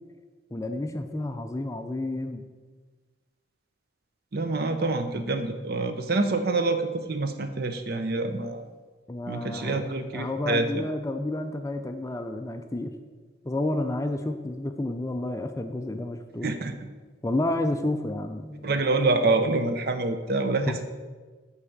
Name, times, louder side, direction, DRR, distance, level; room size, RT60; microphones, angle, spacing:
voice 1, 0.5-2.4 9.1-9.8 10.1-12.9 13.4-16.5 17.2-18.7 20.7-20.8, left 1 dB, 15° left, 7 dB, 0.4 m, -30 dB
voice 2, 4.3-8.7 9.3-10.9 16.4-16.7 18.6-20.9, right 3 dB, 50° right, 8 dB, 0.7 m, -26 dB
8.4 x 4.9 x 7.1 m, 1.4 s
head